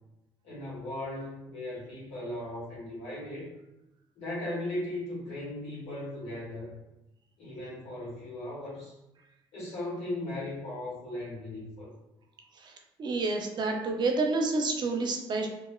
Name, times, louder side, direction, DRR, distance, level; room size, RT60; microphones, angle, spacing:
voice 1, 0.4-3.5 4.1-6.7 7.4-8.9 9.5-11.9, left 1 dB, 70° left, -5 dB, 1.4 m, -37 dB
voice 2, 13.0-15.5, right 3 dB, 45° right, 2 dB, 0.5 m, -29 dB
3.0 x 2.0 x 2.3 m, 0.93 s
supercardioid pair, 85°, 10 cm